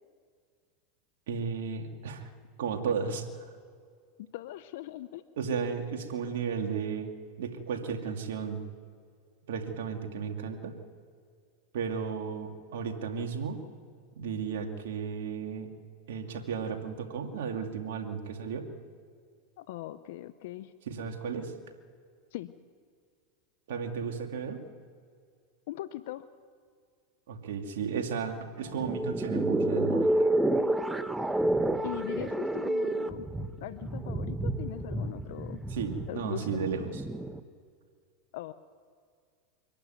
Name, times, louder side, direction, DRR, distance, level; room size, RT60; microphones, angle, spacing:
voice 1, 1.3-2.3 2.6-3.3 5.4-7.1 7.4-8.6 9.5-10.7 11.7-13.6 14.2-15.7 16.1-18.6 20.9-21.5 23.7-24.6 27.3-30.2 35.7-36.8, right 6 dB, 75° right, 4 dB, 2.4 m, -34 dB
voice 2, 4.3-5.2 19.6-20.7 22.3-22.5 25.7-26.3 31.8-33.3 33.6-35.6 36.1-36.6 38.3-38.5, left 14 dB, 70° left, 13 dB, 0.7 m, -40 dB
sound 1, 28.6-37.4, right 1 dB, 5° right, 1.0 m, -29 dB
24.5 x 12.0 x 9.3 m, 2.2 s
hypercardioid pair, 105°, 0 cm